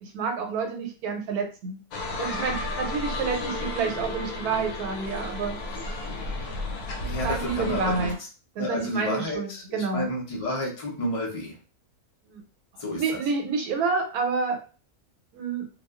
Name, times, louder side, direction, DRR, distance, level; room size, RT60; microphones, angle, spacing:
voice 1, 0.0-1.8 2.2-5.6 7.2-8.2 8.6-10.1 12.3-12.4 13.0-14.6 15.3-15.7, right 5 dB, 90° right, 4 dB, 1.1 m, -28 dB
sound 1, 1.9-8.1, left 2 dB, 80° left, 1.1 m, -33 dB
voice 2, 6.9-8.1 8.6-11.6 12.8-13.2, left 1 dB, 55° left, -2 dB, 0.3 m, -31 dB
2.3 x 2.3 x 2.3 m, 0.36 s
omnidirectional pair, 1.6 m